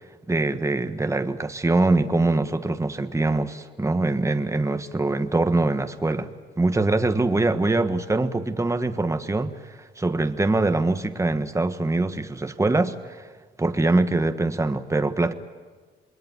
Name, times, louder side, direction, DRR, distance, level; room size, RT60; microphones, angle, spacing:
voice 1, 0.3-6.3 6.6-13.3 13.6-15.3, right 2 dB, 15° right, 8 dB, 1.4 m, -23 dB
27.5 x 21.0 x 9.4 m, 1.4 s
cardioid pair, 90°, 20 cm